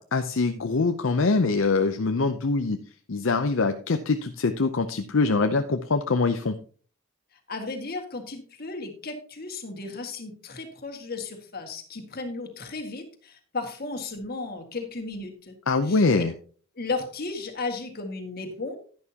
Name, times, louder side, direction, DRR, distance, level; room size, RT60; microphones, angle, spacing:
voice 1, 0.0-2.8 3.1-6.6 15.7-16.3, left 3 dB, 65° left, 7 dB, 0.6 m, -24 dB
voice 2, 7.5-15.6 15.8-16.1 16.7-18.8, left 3 dB, 45° left, 4 dB, 1.8 m, -34 dB
11.0 x 10.5 x 2.8 m, 0.42 s
head